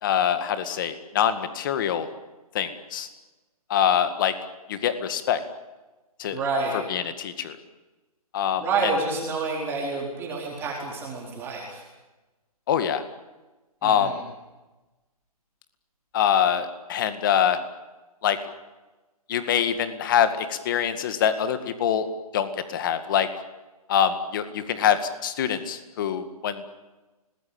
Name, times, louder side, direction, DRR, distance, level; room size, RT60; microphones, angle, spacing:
voice 1, 0.0-2.1 2.5-3.1 3.7-4.3 4.7-5.4 6.2-6.4 6.9-7.5 8.3-8.6 12.7-13.0 13.8-14.1 16.1-17.6 18.2-18.4 19.3-22.1 22.3-23.3 23.9-26.6, left 9 dB, 35° left, 10 dB, 2.0 m, -24 dB
voice 2, 6.3-6.8 8.6-11.8 13.8-14.2, right 3 dB, 10° right, -3 dB, 4.3 m, -28 dB
29.5 x 20.0 x 8.9 m, 1.1 s
hypercardioid pair, 160°, 19 cm